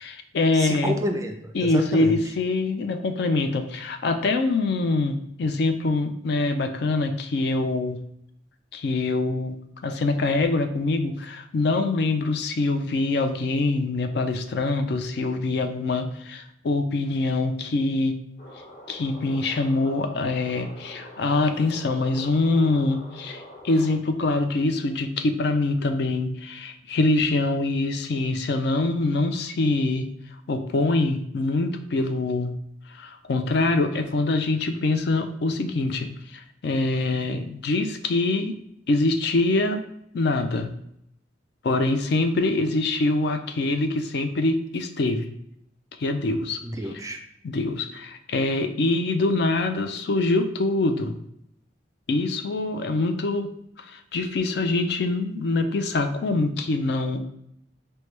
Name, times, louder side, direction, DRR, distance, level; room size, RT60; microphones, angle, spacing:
voice 1, 0.0-0.9 1.5-8.0 8.7-9.6 9.8-18.1 18.9-30.1 30.5-32.5 32.9-38.5 38.9-39.8 40.1-40.7 41.6-45.3 46.0-46.6 47.4-51.2 52.1-53.5 53.9-57.2, left 2 dB, 60° left, 7 dB, 0.4 m, -24 dB
voice 2, 0.5-2.2 46.6-47.2, right 1 dB, 20° right, 4 dB, 0.3 m, -29 dB
sound 1, 18.4-24.0, equal, 45° left, 1.1 m, -44 dB
4.5 x 2.2 x 3.1 m, 0.74 s
head